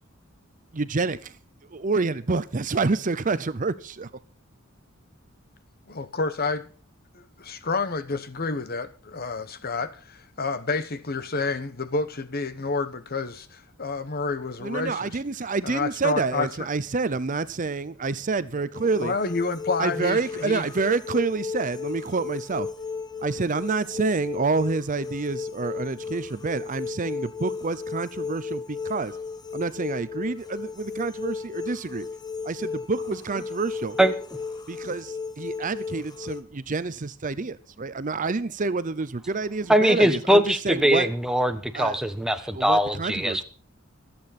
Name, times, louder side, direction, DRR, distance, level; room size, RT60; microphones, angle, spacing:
voice 1, 0.7-1.4 1.7-4.1 14.6-19.1 19.8-22.7 23.2-29.2 29.5-32.1 32.4-34.0 34.7-41.1 41.7-42.1 42.4-43.4, right 4 dB, 40° right, 0.6 m, -28 dB
voice 2, 5.9-6.7 7.1-15.1 15.6-16.5 19.0-20.6, left 4 dB, 45° left, 1.2 m, -29 dB
sound 1, 18.7-36.4, left 5 dB, 20° left, 1.2 m, -35 dB
voice 3, 39.7-43.4, equal, 5° right, 1.2 m, -21 dB
24.5 x 8.6 x 4.2 m
head